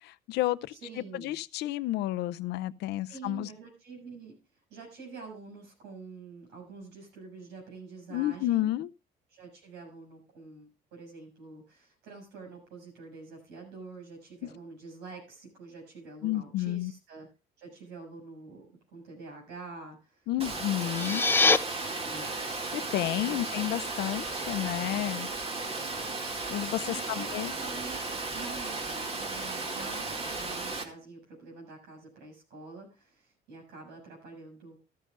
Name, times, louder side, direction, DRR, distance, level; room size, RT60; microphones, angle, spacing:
voice 1, 0.0-0.7 1.1-3.5 8.1-8.9 16.2-16.9 20.3-21.2 22.7-25.3 26.5-27.5, left 15 dB, 80° left, 0.5 m, -31 dB
voice 2, 0.7-1.4 3.1-8.7 9.3-17.3 17.6-20.3 21.0-21.4 22.0-22.3 23.1-23.6 24.9-25.2 25.8-26.1 26.9-28.0 28.3-34.8, right 4 dB, 90° right, 6.6 m, -47 dB
Water, 20.4-30.8, right 3 dB, 35° right, 2.2 m, -35 dB
sound 1, 20.8-21.6, left 3 dB, 10° left, 0.5 m, -23 dB
13.5 x 13.0 x 2.5 m
cardioid pair, 110°, 17 cm